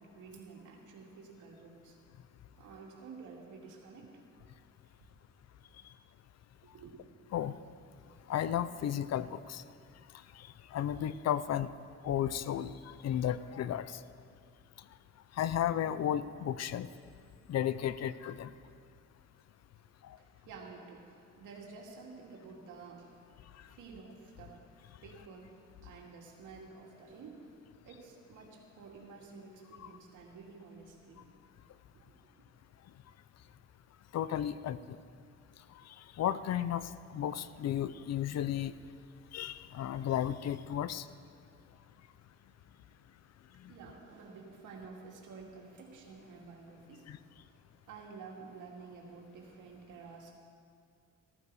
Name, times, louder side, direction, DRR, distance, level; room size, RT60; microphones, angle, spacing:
voice 1, 0.0-2.0 2.6-4.2 4.8-4.9 6.6-7.0 19.8-19.9 20.1-24.7 25.0-31.3 31.9-32.0 43.7-50.3, right 4 dB, 80° right, 0 dB, 2.4 m, -51 dB
voice 2, 8.3-9.6 10.4-11.7 12.0-14.0 15.4-16.9 17.5-18.5 29.8-29.9 34.1-34.8 36.2-38.7 39.3-41.0 47.1-47.2, left 10 dB, 60° left, 15 dB, 0.6 m, -33 dB
14.5 x 14.0 x 4.8 m, 2.3 s
cardioid pair, 90°, 30 cm